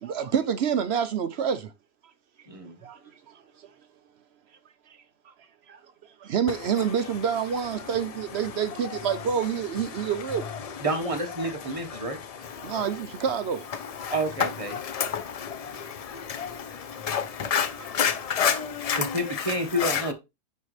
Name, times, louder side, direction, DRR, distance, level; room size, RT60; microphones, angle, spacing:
voice 1, 0.0-1.7 2.8-3.0 3.3-3.4 5.7-5.8 6.2-10.5 12.6-13.7 17.8-17.9 18.3-18.4, right 7 dB, 60° right, 0.8 m, -27 dB
voice 2, 2.5-2.8 10.8-12.2 14.1-14.7 18.9-20.1, right 1 dB, 25° right, 1.2 m, -29 dB
voice 3, 11.4-12.9 14.0-20.1, left 7 dB, 40° left, 0.6 m, -30 dB
10.0 x 3.8 x 3.2 m
omnidirectional pair, 1.4 m